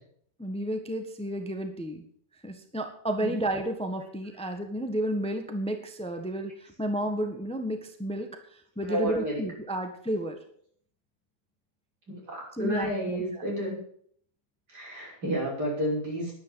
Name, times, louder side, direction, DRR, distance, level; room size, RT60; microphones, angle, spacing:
voice 1, 0.4-2.0 2.4-8.3 8.8-10.4 12.5-13.4, right 1 dB, 5° left, 5 dB, 1.3 m, -32 dB
voice 2, 8.9-9.4 12.1-13.8 14.7-16.3, right 1 dB, 70° right, -3 dB, 6.7 m, -31 dB
11.0 x 10.0 x 8.0 m, 0.62 s
omnidirectional pair, 1.8 m